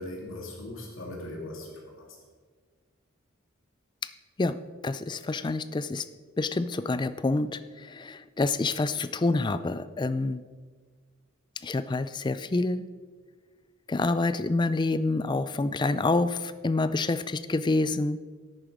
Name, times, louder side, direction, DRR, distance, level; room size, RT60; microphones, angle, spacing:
voice 1, 0.0-2.1, left 1 dB, 70° left, -1 dB, 2.7 m, -39 dB
voice 2, 4.8-6.1 6.4-10.4 11.6-12.9 13.9-18.2, left 3 dB, 20° left, 14 dB, 0.4 m, -27 dB
10.5 x 9.0 x 5.0 m, 1.5 s
head